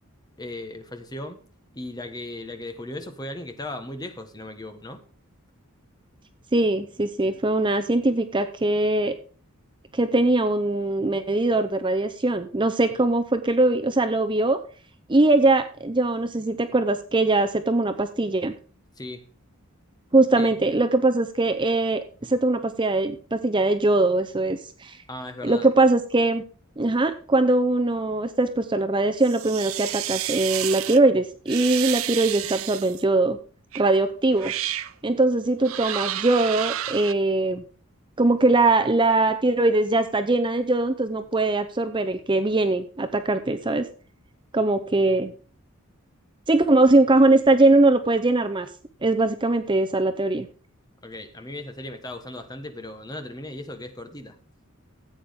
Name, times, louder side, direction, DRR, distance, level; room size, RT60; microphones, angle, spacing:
voice 1, 0.4-1.4 1.7-5.0 13.0-13.1 19.0-19.2 20.4-20.5 25.1-25.7 51.0-54.4, left 1 dB, 20° left, 1.3 m, -37 dB
voice 2, 6.5-9.1 9.9-14.6 15.1-18.5 20.1-25.0 25.4-26.4 26.8-33.4 33.7-34.5 35.0-37.6 38.2-43.9 44.5-45.3 46.5-48.7 49.0-50.5, right 2 dB, 20° right, 0.6 m, -21 dB
sound 1, 29.2-31.0 31.5-33.0 33.7-33.9 34.3-34.9 35.6-37.1, right 13 dB, 70° right, 0.6 m, -31 dB
14.5 x 8.6 x 3.6 m
head